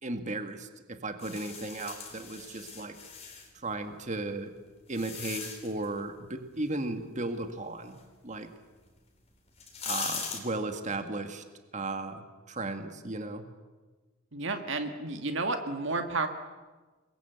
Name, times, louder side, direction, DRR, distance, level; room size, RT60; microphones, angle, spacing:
voice 1, 0.0-2.9 3.5-4.5 4.9-8.0 8.2-8.5 9.8-11.4 11.7-13.5, right 2 dB, 35° right, 7 dB, 1.9 m, -35 dB
sound 1, 1.2-3.5 4.3-5.9 8.9-9.0 9.5-10.4, left 5 dB, 30° left, 4.3 m, -39 dB
voice 2, 14.3-16.3, right 3 dB, 65° right, 7 dB, 1.9 m, -31 dB
27.0 x 22.0 x 8.1 m, 1.3 s
head